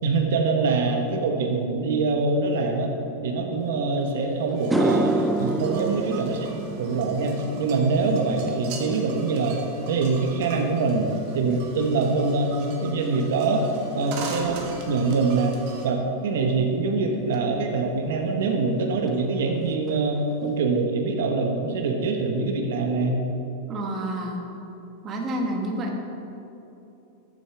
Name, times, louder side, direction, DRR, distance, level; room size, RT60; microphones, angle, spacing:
voice 1, 0.0-2.9 3.2-6.5 6.8-9.6 9.9-14.6 14.9-23.2, right 3 dB, 75° right, 2 dB, 1.2 m, -24 dB
sound 1, 4.0-4.1 4.5-13.0 13.3-13.7 17.3-17.4 19.1-19.2 19.5-19.6 19.9-20.4, right 2 dB, 5° right, 0.4 m, -30 dB
sound 2, 4.6-15.9, right 4 dB, 45° right, 1.5 m, -41 dB
voice 2, 23.7-24.4 25.0-26.0, right 1 dB, 25° right, 1 dB, 1.3 m, -29 dB
14.5 x 8.0 x 3.4 m, 2.9 s
supercardioid pair, 165°, 0 cm